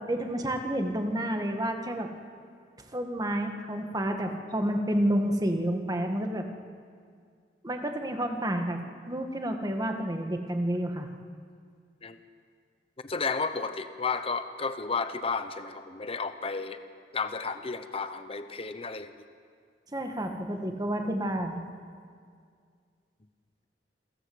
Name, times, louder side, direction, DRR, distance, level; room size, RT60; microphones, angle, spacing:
voice 1, 0.0-2.1 2.8-6.5 7.6-8.8 9.1-11.1 19.9-21.7, right 1 dB, 20° right, 4 dB, 1.7 m, -30 dB
voice 2, 13.0-16.8 17.1-19.1, left 4 dB, 35° left, 10 dB, 0.9 m, -32 dB
28.0 x 13.5 x 7.9 m, 2.2 s
head